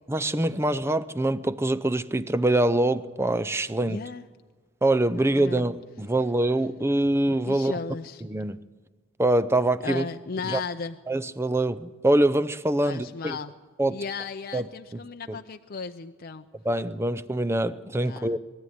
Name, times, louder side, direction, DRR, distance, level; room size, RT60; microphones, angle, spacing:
voice 1, 0.1-4.0 4.8-7.8 8.2-8.6 9.2-10.1 10.5-10.6 11.1-13.4 13.8-14.0 14.5-14.7 15.3-15.4 16.6-18.4, right 1 dB, 10° right, 13 dB, 0.6 m, -24 dB
voice 2, 3.8-4.3 5.1-5.7 7.4-8.2 9.8-11.0 12.8-13.5 13.9-16.5 18.0-18.4, left 5 dB, 45° left, 7 dB, 0.6 m, -35 dB
22.0 x 14.0 x 9.6 m, 1.4 s
head